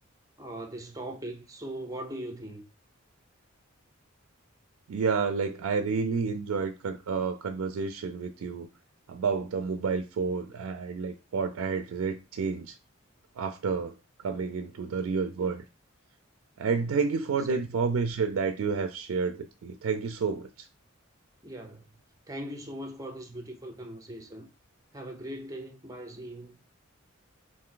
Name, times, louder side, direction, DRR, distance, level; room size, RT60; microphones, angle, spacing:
voice 1, 0.4-2.6 17.4-17.8 21.4-21.8 22.3-24.5 24.9-26.6, right 1 dB, 15° right, 0.6 m, -40 dB
voice 2, 4.9-8.7 9.1-12.8 13.4-13.9 14.2-15.6 16.6-20.7, right 5 dB, 90° right, 0.4 m, -30 dB
3.3 x 2.6 x 3.7 m
head